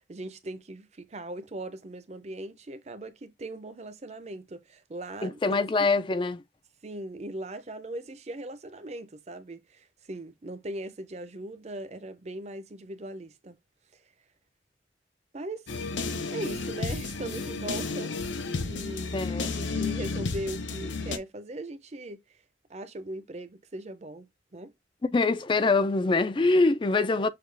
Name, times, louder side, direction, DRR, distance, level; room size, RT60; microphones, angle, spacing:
voice 1, 0.0-5.9 6.8-13.6 13.9-14.0 15.3-15.7 16.3-18.1 18.6-19.2 19.4-22.4 22.7-24.7, right 1 dB, 35° right, 0.5 m, -39 dB
voice 2, 5.2-6.4 19.1-19.5 25.0-27.3, left 3 dB, 25° left, 0.3 m, -24 dB
sound 1, 15.7-21.2, left 4 dB, 75° left, 0.7 m, -32 dB
6.6 x 2.3 x 3.3 m
head